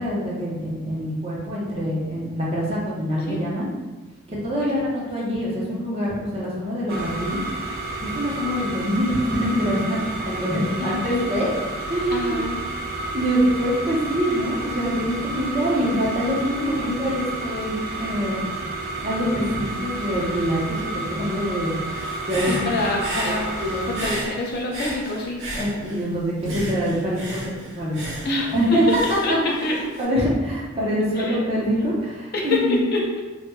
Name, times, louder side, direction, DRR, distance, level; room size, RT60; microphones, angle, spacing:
voice 1, 0.0-3.7 4.3-7.4 8.0-11.5 11.9-12.4 13.1-18.4 19.0-21.7 22.3-22.8 23.2-24.0 25.5-28.2 28.5-29.2 29.6-32.8, equal, 30° right, -6 dB, 0.8 m, -25 dB
sound 1, 6.9-24.1, right 2 dB, 50° right, 0.4 m, -31 dB
voice 2, 10.8-11.3 12.1-12.6 16.6-16.9 22.4-23.6 23.8-25.4 28.2-29.3 29.6-29.8 31.2-31.4 32.3-33.2, left 2 dB, 50° left, -1 dB, 0.5 m, -27 dB
Human voice / Breathing, 21.9-26.1 26.4-30.0, right 1 dB, 70° right, 0.9 m, -33 dB
4.3 x 2.3 x 2.2 m, 1.2 s
head